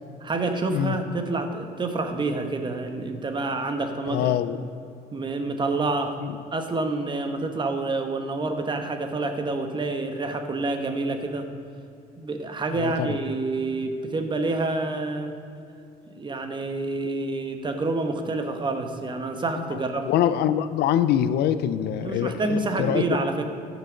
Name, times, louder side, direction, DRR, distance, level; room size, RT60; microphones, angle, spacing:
voice 1, 0.2-4.3 5.1-6.1 6.5-11.5 12.2-15.3 16.1-20.1 22.0-23.4, right 3 dB, 30° right, 6 dB, 1.1 m, -28 dB
voice 2, 4.1-4.6 6.2-6.4 12.8-13.2 19.6-19.8 20.1-23.0, left 10 dB, 75° left, 12 dB, 0.5 m, -24 dB
13.5 x 6.2 x 5.1 m, 2.6 s
cardioid pair, 110°, 17 cm